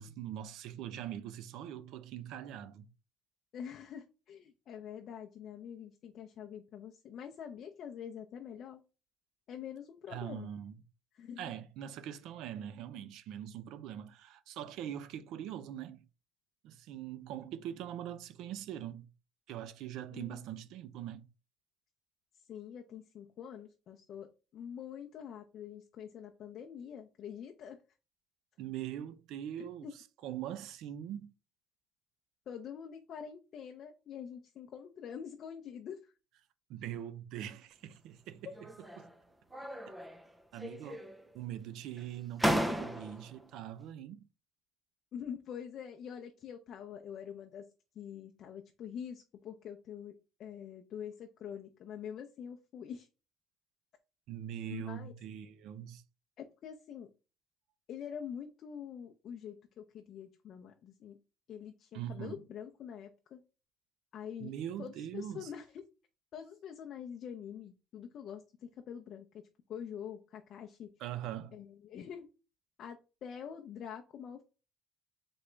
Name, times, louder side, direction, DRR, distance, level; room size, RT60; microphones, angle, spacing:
voice 1, 0.0-2.9 10.1-10.7 11.4-16.1 16.6-19.1 19.5-21.3 28.6-29.9 30.2-31.3 36.7-38.5 39.0-39.1 40.5-41.0 41.3-44.3 54.3-56.0 61.9-62.4 64.4-65.5 71.0-71.6, right 10 dB, 70° right, 0.5 m, -42 dB
voice 2, 3.5-8.8 9.5-10.5 11.1-11.5 20.1-20.4 22.5-27.8 29.6-29.9 32.5-36.1 45.1-47.7 48.0-50.1 50.4-53.1 54.7-55.1 56.4-57.1 57.9-61.2 61.5-63.4 64.1-64.5 64.8-65.9 66.3-69.4 69.7-70.9 71.5-72.3 72.8-74.4, left 8 dB, 50° left, 0.6 m, -45 dB
sound 1, 38.5-39.1 39.5-40.3 40.6-41.3 42.0-42.1 42.4-43.4, equal, 10° right, 0.5 m, -35 dB
3.9 x 3.5 x 3.2 m
cardioid pair, 140°, 0 cm